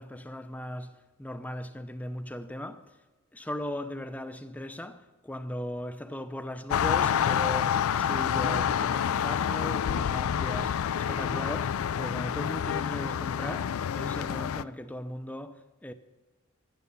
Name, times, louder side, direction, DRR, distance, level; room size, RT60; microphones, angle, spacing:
voice 1, 0.0-2.8 3.3-15.9, left 1 dB, 5° left, 0.5 m, -38 dB
sound 1, 6.7-14.6, left 8 dB, 65° left, 0.3 m, -28 dB
11.5 x 9.3 x 6.8 m
head